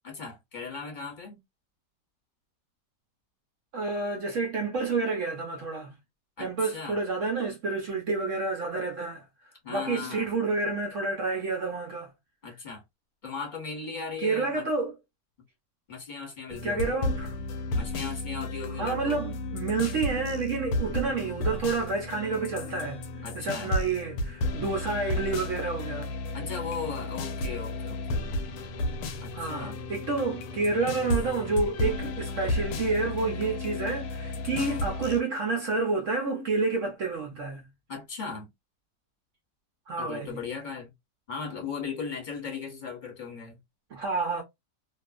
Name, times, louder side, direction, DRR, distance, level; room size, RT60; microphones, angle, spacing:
voice 1, 0.0-1.4 6.4-7.0 9.6-10.3 12.4-12.8 13.2-14.6 15.9-17.0 17.7-19.2 23.2-23.7 26.3-28.2 29.2-29.8 34.5-34.8 37.9-38.5 40.0-40.9 41.3-43.6, left 5 dB, 30° left, 1.1 m, -37 dB
voice 2, 3.7-5.9 6.4-9.2 9.7-12.1 14.2-15.0 16.5-17.4 18.8-26.1 29.3-37.7 39.9-40.4 43.9-44.4, right 3 dB, 65° right, 0.7 m, -29 dB
sound 1, 16.5-35.2, left 2 dB, 70° left, 1.0 m, -33 dB
2.7 x 2.4 x 2.3 m
omnidirectional pair, 1.9 m